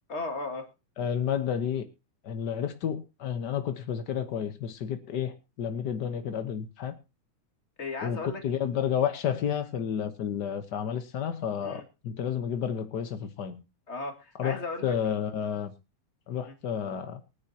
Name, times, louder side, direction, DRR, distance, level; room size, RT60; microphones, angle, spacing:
voice 1, 0.1-0.7 7.8-8.4 11.6-11.8 13.9-14.9 16.5-16.6, left 3 dB, 25° left, 5 dB, 2.1 m, -35 dB
voice 2, 1.0-1.9 2.2-6.9 8.0-13.6 14.4-15.7 16.3-17.2, left 8 dB, 80° left, 9 dB, 0.9 m, -31 dB
23.0 x 9.8 x 2.8 m, 0.29 s
omnidirectional pair, 3.4 m